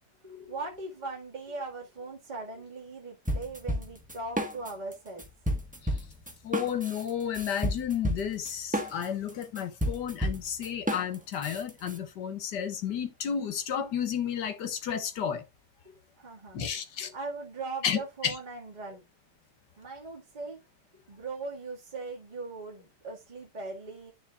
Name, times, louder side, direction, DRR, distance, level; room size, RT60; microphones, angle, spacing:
voice 1, 0.2-5.3 15.8-19.0 19.8-20.6 21.1-24.1, right 3 dB, 25° right, 2.0 m, -40 dB
sound 1, 3.3-4.9 5.2-12.0, equal, 5° right, 1.2 m, -32 dB
voice 2, 6.4-15.4 16.5-17.1 17.8-18.3, left 8 dB, 80° left, 1.8 m, -32 dB
10.5 x 7.0 x 2.4 m
omnidirectional pair, 1.8 m